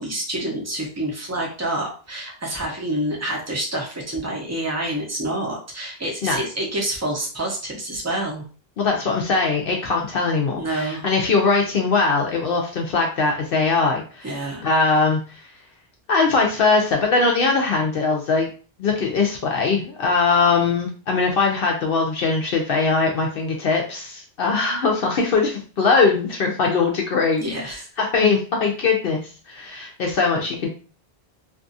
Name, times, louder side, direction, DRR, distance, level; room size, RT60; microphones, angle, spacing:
voice 1, 0.0-8.4 10.6-11.0 14.2-14.6 27.4-27.9, right 1 dB, 20° right, -1 dB, 0.6 m, -27 dB
voice 2, 8.8-14.3 14.6-15.5 16.1-18.5 18.8-30.7, left 4 dB, 65° left, 1 dB, 0.7 m, -21 dB
2.6 x 2.4 x 2.5 m, 0.38 s
omnidirectional pair, 1.1 m